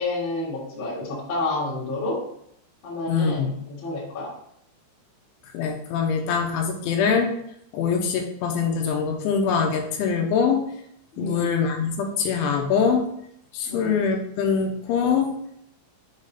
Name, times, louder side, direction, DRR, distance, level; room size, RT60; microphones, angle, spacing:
voice 1, 0.0-2.2 2.8-4.3 11.1-11.6 13.6-14.0, left 2 dB, 50° left, -6 dB, 1.5 m, -29 dB
voice 2, 3.1-3.5 5.5-7.3 7.7-10.6 11.2-13.1 13.5-15.3, left 6 dB, 85° left, 2 dB, 3.1 m, -23 dB
7.3 x 3.5 x 4.0 m, 0.72 s
omnidirectional pair, 5.5 m